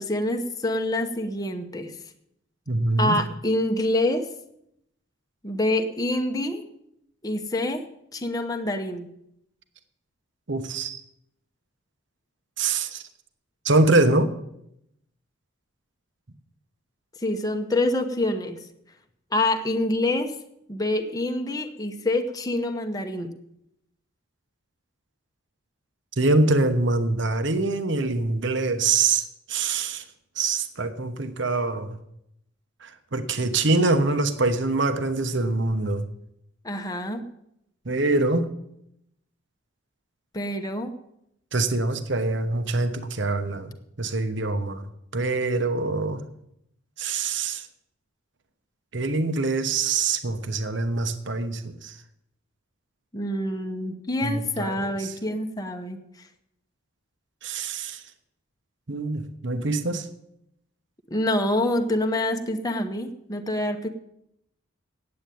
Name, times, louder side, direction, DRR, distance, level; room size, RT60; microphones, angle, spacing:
voice 1, 0.0-2.0 3.0-4.3 5.4-6.6 7.2-7.9 8.1-9.1 17.2-18.6 19.3-20.4 20.7-23.3 36.6-37.2 40.3-40.9 53.1-56.3 61.1-63.9, left 1 dB, 15° left, 5 dB, 0.9 m, -26 dB
voice 2, 2.7-3.2 10.5-11.0 12.6-13.0 13.6-14.3 26.2-30.0 30.4-32.0 32.8-36.1 37.8-38.5 41.5-44.8 45.1-46.2 47.0-47.7 48.9-52.0 54.2-55.1 57.4-58.0 58.9-60.1, right 3 dB, 55° right, 9 dB, 1.0 m, -24 dB
8.9 x 8.6 x 9.2 m, 0.79 s
head